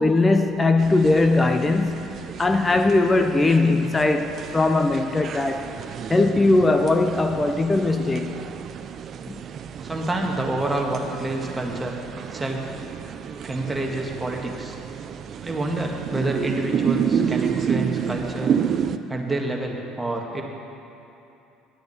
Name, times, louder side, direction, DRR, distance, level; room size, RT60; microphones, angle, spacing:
voice 1, 0.0-2.1 2.4-5.6 6.1-8.4 9.3-9.4, left 2 dB, 20° left, 6 dB, 0.7 m, -20 dB
sound 1, 0.8-19.0, right 7 dB, 50° right, 0.5 m, -30 dB
voice 2, 9.8-12.7 13.4-14.8 15.4-18.5 19.1-20.4, right 2 dB, 15° right, 0 dB, 1.7 m, -28 dB
10.5 x 7.9 x 7.1 m, 2.9 s
supercardioid pair, 80°, 0 cm